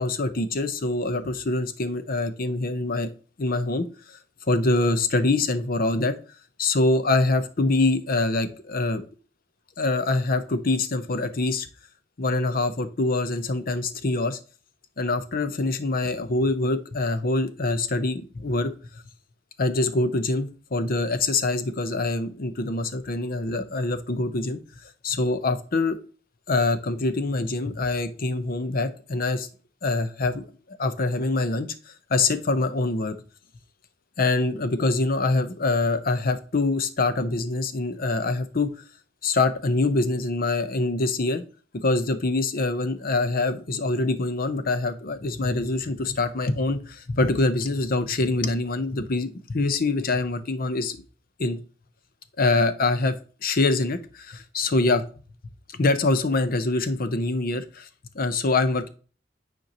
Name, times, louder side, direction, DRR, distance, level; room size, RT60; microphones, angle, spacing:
voice 1, 0.0-3.1 3.4-4.2 4.5-6.1 6.6-9.0 9.8-11.7 12.2-14.4 15.0-18.7 19.6-24.6 25.0-26.0 26.5-29.5 29.8-33.2 34.2-38.7 39.2-41.4 41.7-51.0 51.4-51.6 52.4-53.1 53.4-55.0 55.7-57.9 58.1-58.9, left 2 dB, 50° left, 11 dB, 0.7 m, -24 dB
9.3 x 4.5 x 2.9 m, 0.38 s
head